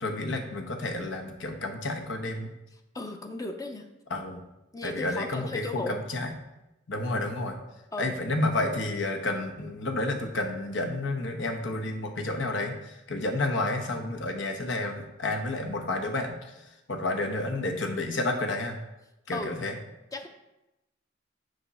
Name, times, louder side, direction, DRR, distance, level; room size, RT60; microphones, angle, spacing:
voice 1, 0.0-2.5 4.1-4.4 4.8-6.3 6.9-7.6 8.0-18.8 19.3-19.8, left 2 dB, 85° left, 3 dB, 1.0 m, -30 dB
voice 2, 2.9-3.9 4.7-6.0 7.9-8.1 19.3-19.5 20.1-20.3, left 2 dB, 20° left, 5 dB, 0.5 m, -35 dB
6.7 x 5.0 x 4.2 m, 0.95 s
head